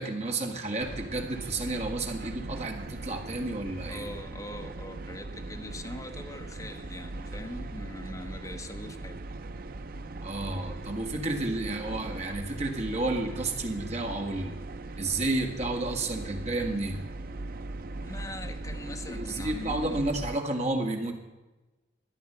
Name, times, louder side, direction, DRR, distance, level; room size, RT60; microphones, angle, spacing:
voice 1, 0.0-4.1 10.2-14.6 15.0-17.0 19.0-21.1, right 2 dB, 35° right, 2 dB, 1.7 m, -31 dB
sound 1, 0.8-20.4, right 2 dB, 50° right, 0.6 m, -39 dB
voice 2, 3.9-9.2 17.9-20.0, left 1 dB, 20° left, 5 dB, 1.0 m, -41 dB
13.0 x 9.4 x 6.8 m, 1.1 s
head